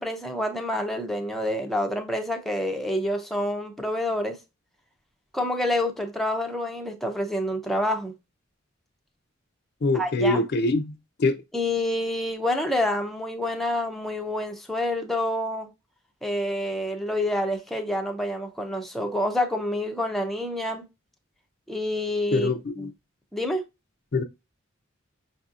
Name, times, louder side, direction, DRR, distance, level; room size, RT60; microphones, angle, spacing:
voice 1, 0.0-4.4 5.3-8.1 9.9-10.4 11.5-15.7 16.2-20.8 21.7-22.5 23.3-23.6, left 1 dB, ahead, 0.5 m, -27 dB
voice 2, 9.8-10.9 11.2-11.4 22.3-22.9 24.1-24.2, left 2 dB, 55° left, 0.4 m, -24 dB
5.3 x 2.7 x 2.4 m
head